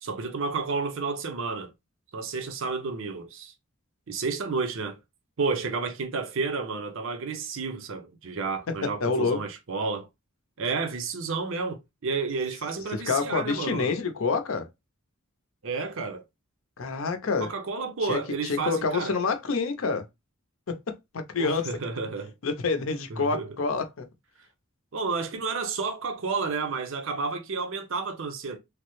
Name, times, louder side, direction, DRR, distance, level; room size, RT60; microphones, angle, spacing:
voice 1, 0.0-1.7 2.1-3.5 4.1-5.0 5.4-10.1 10.6-11.8 12.0-14.0 15.6-16.2 17.4-19.2 21.4-22.3 23.1-23.5 24.9-28.6, right 4 dB, 65° right, 0.6 m, -31 dB
voice 2, 8.7-9.4 12.9-14.7 16.8-17.5 18.0-20.0 20.7-20.8 21.1-21.7 22.4-24.1, left 4 dB, 65° left, 0.6 m, -27 dB
3.2 x 2.0 x 3.0 m
head